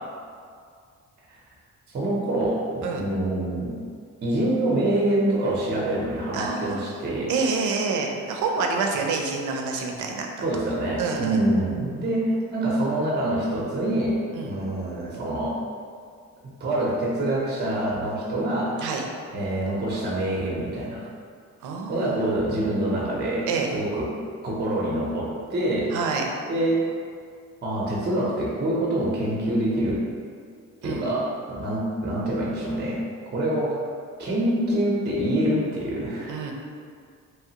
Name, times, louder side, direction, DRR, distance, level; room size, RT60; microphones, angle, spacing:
voice 1, 1.9-3.8 4.2-7.3 10.4-14.2 14.4-15.6 16.4-18.8 19.3-21.1 21.9-24.1 24.4-25.9 26.5-26.8 27.6-30.0 30.8-33.0 33.3-33.8 34.2-36.5, right 1 dB, 35° right, -4 dB, 0.7 m, -25 dB
voice 2, 6.3-6.9 7.3-10.3 11.0-11.4 14.3-14.6 18.8-19.1 21.6-22.3 23.5-23.7 25.9-26.3 30.8-31.1 36.3-36.5, right 4 dB, 80° right, 2 dB, 0.5 m, -27 dB
3.1 x 2.3 x 2.8 m, 2.1 s
cardioid pair, 90°, 30 cm